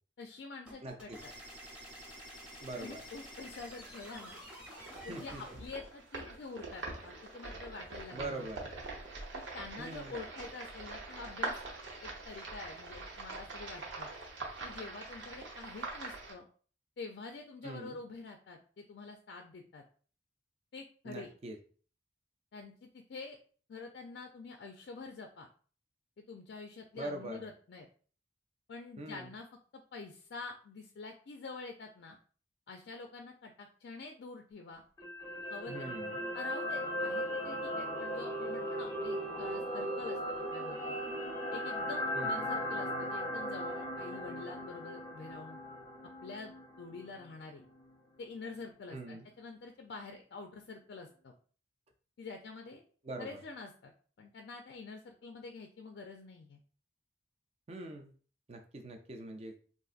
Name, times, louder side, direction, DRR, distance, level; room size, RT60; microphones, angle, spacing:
voice 1, 0.2-1.3 2.8-4.4 5.0-5.3 5.6-8.5 9.3-11.5 12.0-14.1 14.6-16.5 17.0-19.8 20.7-21.3 22.5-23.4 23.7-25.5 26.3-27.9 28.7-29.5 29.7-32.2 32.7-34.8 35.5-35.9 36.3-40.2 40.5-41.0 41.5-45.6 46.2-47.6 48.2-51.3 52.2-52.8 53.2-53.9 54.2-56.6, left 4 dB, 60° left, 4 dB, 0.4 m, -47 dB
sound 1, 0.7-5.7, equal, 5° right, 0.9 m, -49 dB
voice 2, 0.8-1.2 2.6-3.0 5.1-5.4 8.1-8.7 9.8-10.1 17.6-18.0 21.1-21.6 26.9-27.4 29.0-29.3 35.7-36.2 42.1-42.5 48.9-49.2 53.0-53.4 57.7-58.1 58.5-59.6, right 2 dB, 35° right, 4 dB, 0.4 m, -43 dB
sound 2, 4.7-16.3, right 3 dB, 85° right, 0.8 m, -43 dB
sound 3, 35.0-47.3 47.6-47.8, equal, 20° left, 0.6 m, -37 dB
3.8 x 2.5 x 2.4 m, 0.42 s
head